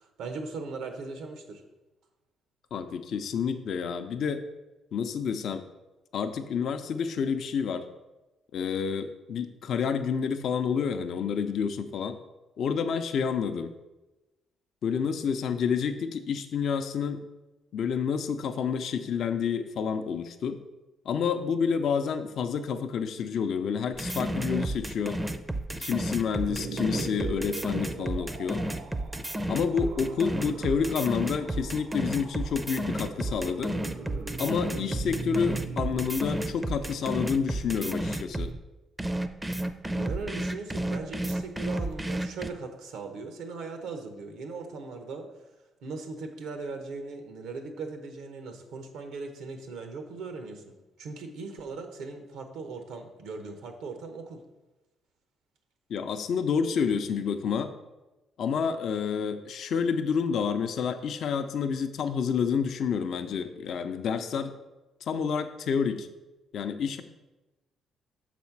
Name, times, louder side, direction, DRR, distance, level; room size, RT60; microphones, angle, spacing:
voice 1, 0.0-1.6 39.9-45.3 45.8-54.4, right 4 dB, 90° right, 6 dB, 0.9 m, -39 dB
voice 2, 2.7-4.4 4.9-5.6 6.1-7.9 8.5-12.2 12.6-13.7 14.8-17.2 17.7-20.6 21.1-25.2 25.8-28.6 29.5-33.8 34.4-38.5 55.9-57.7 58.4-64.5 65.0-66.1 66.5-67.0, left 6 dB, 70° left, 8 dB, 0.5 m, -29 dB
sound 1, 23.9-38.5 39.0-42.5, right 1 dB, 15° right, 0.4 m, -31 dB
sound 2, 26.4-38.6, right 5 dB, 65° right, 0.5 m, -41 dB
6.3 x 4.2 x 5.9 m, 1.1 s
cardioid pair, 90°, 0 cm